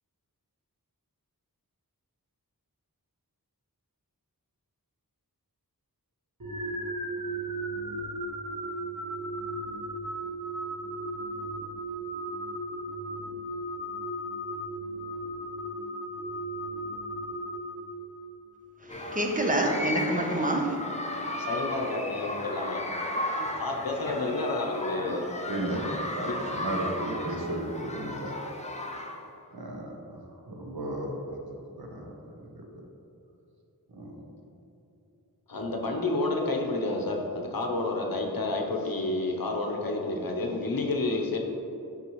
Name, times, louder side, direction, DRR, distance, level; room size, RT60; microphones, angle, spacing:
sound 1, 6.4-18.4, right 1 dB, 60° right, 1.1 m, -36 dB
voice 1, 18.8-20.8 25.0-25.1, right 1 dB, 20° right, 1 dB, 0.8 m, -27 dB
sound 2, 18.9-29.4, left 1 dB, 20° left, 0.6 m, -35 dB
voice 2, 21.3-22.8 23.6-25.3 26.2-26.3 35.5-41.4, left 2 dB, 65° left, 1 dB, 0.8 m, -30 dB
voice 3, 25.5-28.3 29.5-30.2 30.5-31.4 31.8-32.1 32.4-32.7 33.9-34.2, right 1 dB, 80° right, 1 dB, 0.9 m, -34 dB
5.9 x 5.5 x 3.0 m, 2.8 s
wide cardioid pair, 55°, 37 cm